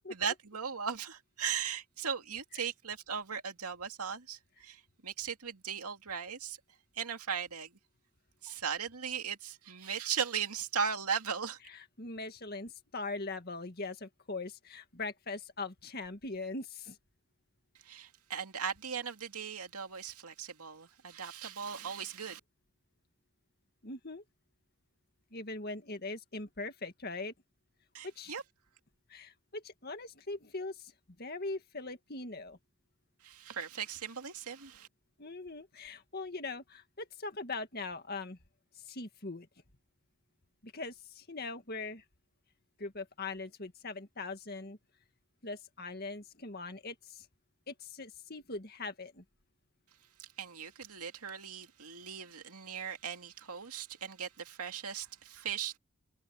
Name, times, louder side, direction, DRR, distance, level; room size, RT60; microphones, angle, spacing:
voice 1, 0.0-6.6 7.0-7.7 8.4-11.6 17.9-22.4 27.9-28.4 33.2-34.9 50.4-55.8, right 7 dB, 85° right, 2.3 m, -38 dB
voice 2, 11.7-17.0 23.8-24.2 25.3-27.3 28.0-28.3 29.1-30.9 31.2-32.6 35.2-38.4 38.8-39.5 40.6-42.0 42.8-44.8 45.4-47.3 47.7-49.2, left 3 dB, 45° left, 2.0 m, -41 dB
head